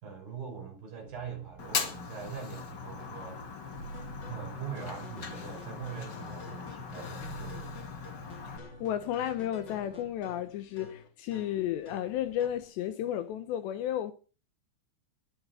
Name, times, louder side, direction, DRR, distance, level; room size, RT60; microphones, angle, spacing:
voice 1, 0.0-3.4 4.3-7.7, right 6 dB, 50° right, 7.1 m, -42 dB
sound 1, 1.1-10.1, right 4 dB, 70° right, 9.6 m, -51 dB
Fire, 1.6-8.6, left 5 dB, 55° left, 1.2 m, -39 dB
sound 2, 3.9-12.7, left 3 dB, 30° left, 2.8 m, -50 dB
voice 2, 8.8-14.1, left 11 dB, 75° left, 3.1 m, -33 dB
21.0 x 7.6 x 9.0 m
omnidirectional pair, 5.4 m